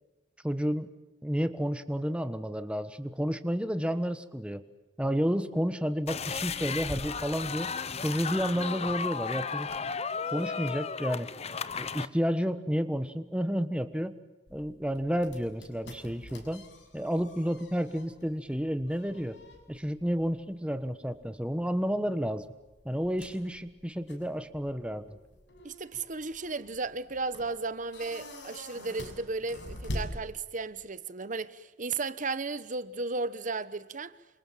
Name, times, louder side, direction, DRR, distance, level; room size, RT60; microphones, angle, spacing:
voice 1, 0.4-0.9 1.2-4.6 5.0-7.7 8.0-9.7 10.3-11.3 11.8-14.1 14.5-16.6 16.9-19.4 19.7-22.5 22.8-25.2, equal, 5° right, 1.3 m, -31 dB
sound 1, 6.1-12.1, left 5 dB, 35° left, 0.9 m, -34 dB
sound 2, 14.5-30.8, left 1 dB, 70° left, 6.6 m, -46 dB
voice 2, 25.6-34.2, right 3 dB, 45° right, 1.0 m, -35 dB
28.5 x 26.5 x 7.5 m
head